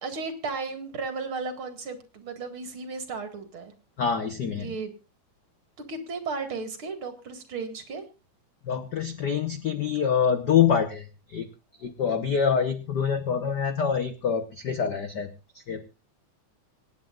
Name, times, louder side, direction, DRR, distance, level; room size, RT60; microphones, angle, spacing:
voice 1, 0.0-3.7 4.6-4.9 5.8-8.0, right 4 dB, 50° right, 7 dB, 2.6 m, -34 dB
voice 2, 4.0-4.7 8.6-11.5 11.8-15.3 15.7-15.8, left 7 dB, 60° left, 8 dB, 1.1 m, -25 dB
26.5 x 9.5 x 2.4 m, 0.28 s
omnidirectional pair, 3.3 m